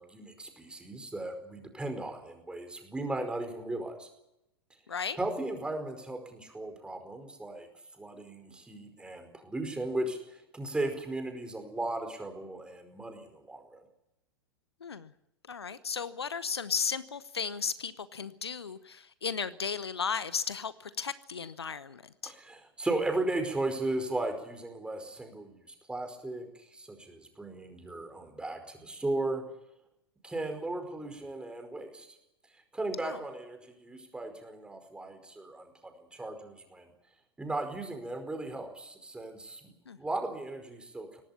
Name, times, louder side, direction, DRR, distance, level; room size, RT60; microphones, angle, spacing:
voice 1, 0.0-4.1 5.2-7.7 8.0-13.8 22.2-25.6 25.9-29.4 30.2-32.1 32.7-36.9 37.4-41.2, right 2 dB, 5° right, 5 dB, 4.9 m, -36 dB
voice 2, 4.9-5.2 14.8-15.1 15.5-22.3 33.0-33.2 39.9-40.0, left 6 dB, 75° left, 16 dB, 1.0 m, -35 dB
24.0 x 18.5 x 7.3 m, 0.85 s
figure-of-eight pair, 95°, 14 cm